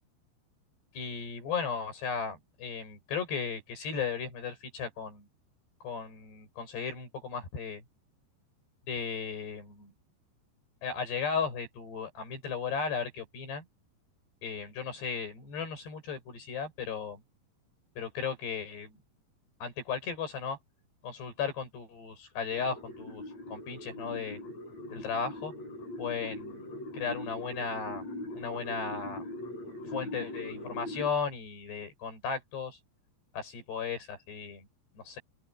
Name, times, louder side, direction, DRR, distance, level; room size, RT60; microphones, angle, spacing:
voice 1, 0.9-5.3 5.8-7.8 8.9-9.9 10.8-13.6 14.4-17.2 18.0-19.0 19.6-20.6 21.0-23.2 23.5-24.4 24.9-25.5 26.0-26.6 26.9-28.0 28.3-29.2 29.9-32.8 33.3-34.7 35.0-35.2, left 6 dB, 65° left, 9.3 m, -35 dB
sound 1, 22.5-31.1, left 1 dB, 35° left, 8.7 m, -41 dB
open air
omnidirectional pair, 5.1 m